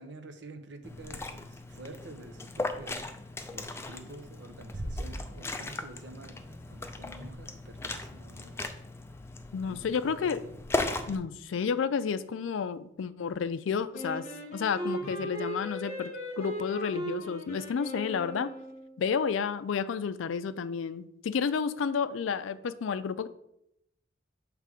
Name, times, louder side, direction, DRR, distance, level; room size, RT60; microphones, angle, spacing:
voice 1, 0.0-3.2 3.5-8.6 9.6-10.5 10.8-11.2 15.0-15.4, right 2 dB, 60° right, 6 dB, 0.8 m, -48 dB
Liquid, 0.8-11.2, left 2 dB, 15° left, 0.3 m, -38 dB
Bass drum, 4.7-6.2, right 1 dB, 20° right, 0.8 m, -38 dB
voice 2, 9.5-10.4 11.1-14.3 14.5-18.5 19.0-23.3, left 6 dB, 80° left, 14 dB, 0.4 m, -31 dB
Wind instrument woodwind instrument, 13.9-19.0, equal, 35° left, 1.4 m, -37 dB
6.7 x 3.3 x 4.8 m, 0.78 s
head